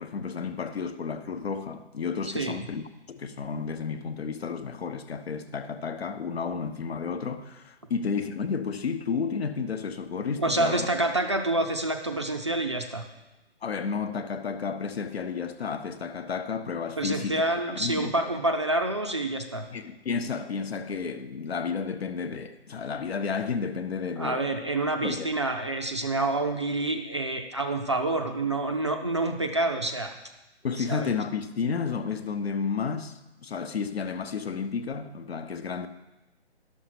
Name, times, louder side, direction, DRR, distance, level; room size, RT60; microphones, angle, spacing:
voice 1, 0.0-10.9 13.6-18.1 19.7-24.5 25.0-25.3 30.6-35.9, left 5 dB, 65° left, 0.9 m, -32 dB
voice 2, 2.3-2.6 10.4-13.0 17.0-19.7 24.2-30.2 30.8-31.1, right 2 dB, 25° right, 0.5 m, -28 dB
11.5 x 6.4 x 5.9 m
hypercardioid pair, 165°, 33 cm